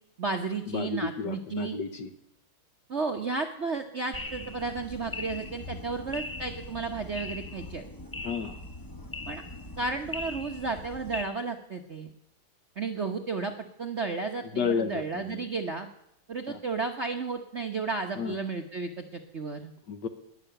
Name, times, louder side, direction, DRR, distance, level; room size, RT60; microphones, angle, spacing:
voice 1, 0.2-1.8 2.9-7.8 9.3-9.4 9.8-12.1 12.8-13.5 13.8-15.9 16.3-19.7, right 4 dB, 45° right, 4 dB, 0.9 m, -33 dB
voice 2, 0.7-2.1 8.2-8.6 14.5-15.4 16.5-16.6 18.2-18.4 19.9-20.1, left 6 dB, 60° left, 9 dB, 1.5 m, -32 dB
sound 1, 4.1-11.2, left 2 dB, 25° left, 0.5 m, -40 dB
19.5 x 6.9 x 10.0 m, 0.77 s
omnidirectional pair, 2.4 m